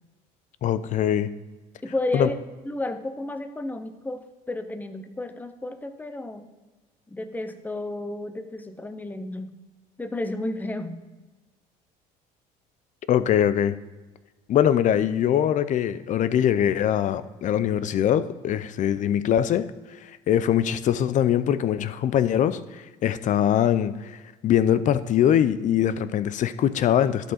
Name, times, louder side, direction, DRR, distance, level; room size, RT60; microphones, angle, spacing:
voice 1, 0.6-1.3 2.1-2.3 13.1-13.7 14.5-19.7 20.0-24.2 24.4-27.3, left 10 dB, 50° left, 14 dB, 0.6 m, -22 dB
voice 2, 1.8-6.5 7.1-9.5 10.0-11.0, left 2 dB, 10° left, 9 dB, 0.8 m, -32 dB
11.5 x 5.5 x 4.3 m, 1.2 s
cardioid pair, 105°, 17 cm